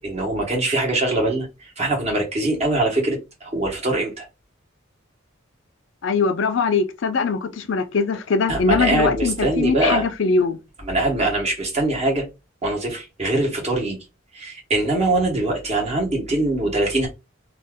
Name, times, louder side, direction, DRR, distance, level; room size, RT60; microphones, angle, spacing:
voice 1, 0.0-4.2 8.5-10.1 10.8-12.2 12.6-14.0 14.3-17.1, right 2 dB, 35° right, 1.1 m, -22 dB
voice 2, 6.0-10.6, left 4 dB, 65° left, 0.5 m, -21 dB
2.7 x 2.3 x 3.5 m
head